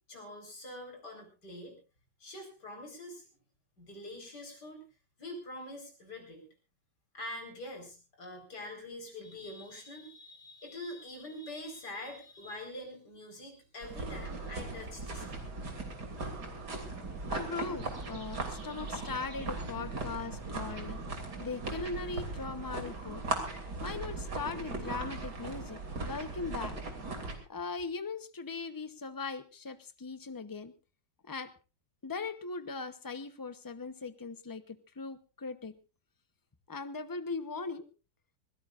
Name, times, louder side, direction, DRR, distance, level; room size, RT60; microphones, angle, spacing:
voice 1, 0.1-1.8 2.2-3.2 3.8-4.8 5.2-6.4 7.1-15.4, left 1 dB, 70° left, 3 dB, 5.3 m, -45 dB
sound 1, 13.8-27.4, right 3 dB, 70° right, 3.5 m, -38 dB
voice 2, 17.3-26.8 27.5-30.7 31.3-31.5 32.0-35.7 36.7-37.9, left 4 dB, 20° left, 11 dB, 0.6 m, -39 dB
24.5 x 17.0 x 2.5 m, 0.32 s
omnidirectional pair, 1.8 m